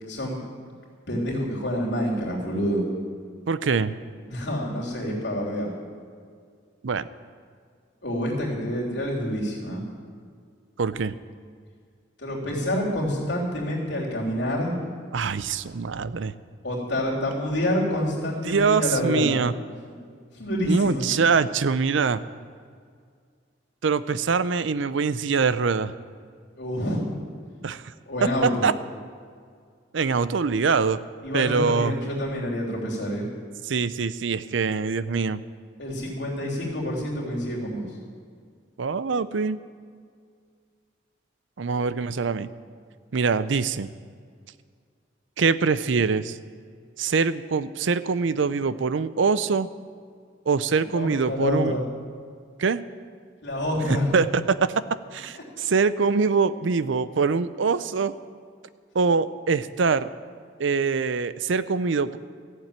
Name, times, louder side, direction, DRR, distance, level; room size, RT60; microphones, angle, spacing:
voice 1, 0.1-0.4 1.1-2.8 4.2-5.7 8.0-9.8 12.2-14.7 16.6-19.4 20.3-21.0 26.6-27.1 28.1-28.6 31.2-33.3 35.8-37.9 50.8-51.8 53.4-54.1, equal, 65° left, -3 dB, 3.3 m, -27 dB
voice 2, 3.5-3.9 6.8-7.1 10.8-11.2 15.1-16.3 18.4-19.5 20.6-22.2 23.8-25.9 27.6-27.9 28.2-28.7 29.9-31.0 31.3-31.9 33.6-35.4 38.8-39.6 41.6-42.5 43.1-43.9 45.4-46.4 47.0-49.7 50.5-51.7 52.6-52.8 54.1-54.7 55.1-58.1 58.9-60.1 60.6-62.2, right 5 dB, 75° right, 15 dB, 0.5 m, -23 dB
14.0 x 7.5 x 8.8 m, 2.1 s
head